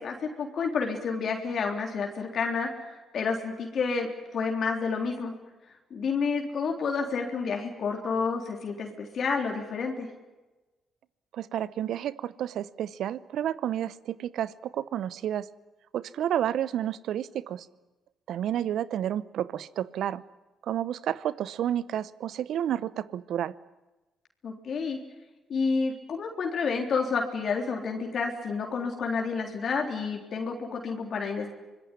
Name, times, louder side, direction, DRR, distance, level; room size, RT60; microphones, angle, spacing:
voice 1, 0.0-5.3 5.9-10.1 24.4-25.0 25.5-31.5, left 5 dB, 55° left, 2 dB, 3.6 m, -30 dB
voice 2, 11.3-15.5 15.9-17.7 18.3-20.2 20.6-23.5, right 10 dB, 65° right, 18 dB, 0.8 m, -30 dB
25.0 x 20.5 x 10.0 m, 1.1 s
hypercardioid pair, 45°, 0 cm